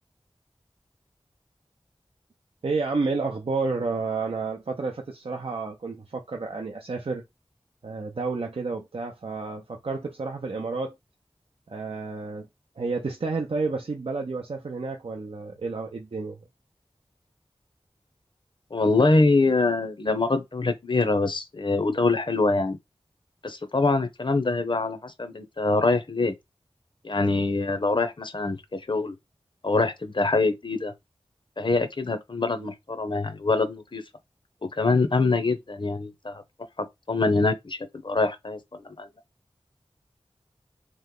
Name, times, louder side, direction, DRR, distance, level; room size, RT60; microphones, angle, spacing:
voice 1, 2.6-7.2 7.8-10.9 11.7-12.5 12.8-16.4, right 4 dB, 65° right, 0.6 m, -30 dB
voice 2, 18.7-22.8 23.4-26.3 27.0-29.1 29.6-30.9 31.6-34.0 34.7-36.4 36.8-37.8 38.0-38.6 39.0-39.1, left 3 dB, 50° left, 0.6 m, -24 dB
3.0 x 2.1 x 3.7 m
wide cardioid pair, 55°, 10 cm